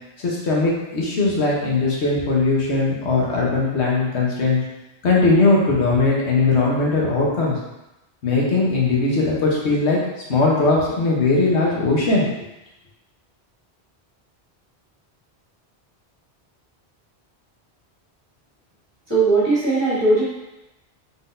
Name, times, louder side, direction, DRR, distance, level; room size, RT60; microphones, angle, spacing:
voice 1, 0.2-4.6 5.0-7.5 8.2-10.0 10.3-12.2, left 3 dB, 85° left, -4 dB, 1.2 m, -19 dB
voice 2, 19.1-20.2, right 3 dB, 25° right, -10 dB, 1.5 m, -18 dB
3.9 x 3.8 x 2.6 m, 0.95 s
omnidirectional pair, 1.1 m